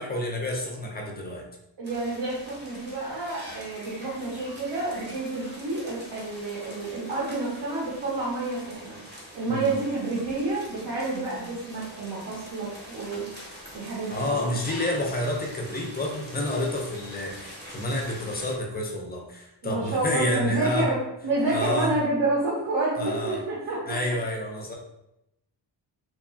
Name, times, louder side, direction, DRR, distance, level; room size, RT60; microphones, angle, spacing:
voice 1, 0.0-1.5 9.5-9.8 14.1-20.9 21.5-21.9 23.0-23.4 23.9-24.7, left 1 dB, 25° left, 1 dB, 0.3 m, -29 dB
sound 1, 1.8-18.5, equal, 25° right, 0.7 m, -44 dB
voice 2, 1.8-9.0 9.3-13.3 13.7-14.6 19.6-21.0 21.2-23.8, right 2 dB, 70° right, -5 dB, 0.8 m, -29 dB
2.8 x 2.3 x 2.4 m, 0.86 s
wide cardioid pair, 155°, 44 cm